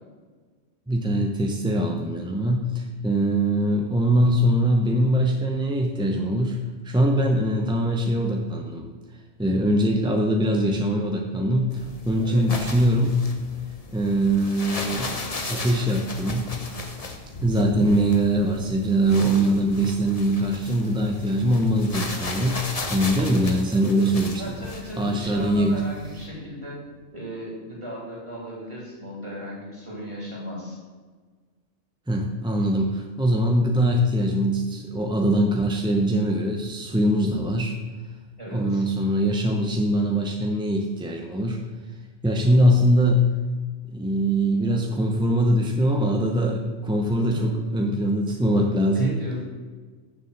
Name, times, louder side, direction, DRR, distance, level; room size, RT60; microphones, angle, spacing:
voice 1, 0.9-6.6 6.8-8.9 9.4-13.3 13.9-15.2 15.5-16.6 17.4-24.6 25.0-25.9 32.1-37.8 38.5-41.6 42.2-43.3 43.9-49.3, right 1 dB, 5° right, 1 dB, 0.5 m, -22 dB
sound 1, 11.7-26.3, left 3 dB, 35° left, 0.9 m, -36 dB
sound 2, 17.3-27.1, left 1 dB, 85° left, 2.0 m, -41 dB
voice 2, 24.4-26.8 27.1-30.8 38.4-38.8 47.2-47.4 48.9-49.5, equal, 25° right, -5 dB, 3.3 m, -36 dB
7.1 x 6.8 x 6.5 m, 1.4 s
omnidirectional pair, 1.3 m